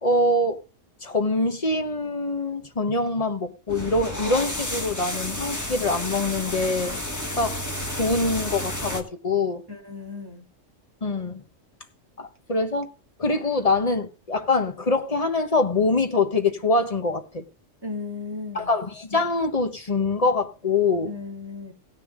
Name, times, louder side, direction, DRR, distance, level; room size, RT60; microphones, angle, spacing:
voice 1, 0.0-0.6 1.0-7.0 7.4-7.6 7.9-9.6 11.0-11.4 12.2-12.9 13.2-17.4 18.5-21.1, left 2 dB, 30° left, 1.2 m, -24 dB
sound 1, 3.7-9.0, left 1 dB, 15° left, 1.6 m, -31 dB
voice 2, 9.7-10.4 17.8-18.8 21.1-21.7, left 4 dB, 15° right, 2.9 m, -35 dB
17.5 x 6.7 x 3.7 m
omnidirectional pair, 1.3 m